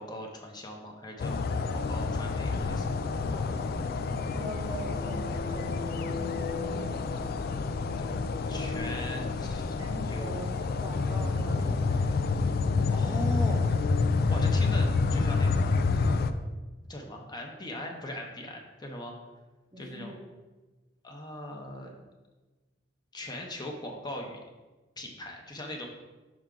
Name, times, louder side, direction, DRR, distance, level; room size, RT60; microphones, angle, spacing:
voice 1, 0.0-3.0 8.0-9.7 10.1-10.4 12.9-13.7 14.3-15.7 16.9-19.1 19.8-20.2 21.0-21.9 23.1-24.4 25.0-25.9, left 1 dB, 25° left, 1 dB, 0.7 m, -40 dB
sound 1, 1.2-16.3, left 4 dB, 55° left, 0.3 m, -28 dB
voice 2, 4.3-7.0 9.8-10.5 10.8-12.2 19.7-20.2, equal, 20° right, 1 dB, 0.6 m, -42 dB
6.0 x 4.5 x 3.8 m, 1.2 s
head